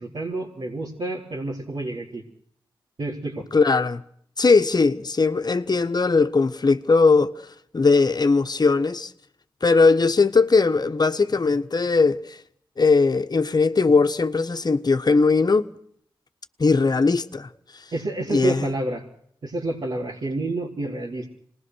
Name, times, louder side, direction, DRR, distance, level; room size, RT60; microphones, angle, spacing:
voice 1, 0.0-2.2 3.0-3.4 17.9-19.0 19.4-21.3, right 2 dB, 65° right, 4.3 m, -29 dB
voice 2, 3.5-4.0 4.4-7.3 7.7-9.1 9.6-12.4 12.8-15.7 16.6-17.5 18.3-18.7, left 4 dB, 45° left, 1.3 m, -19 dB
26.0 x 20.0 x 6.4 m
cardioid pair, 50°, 9 cm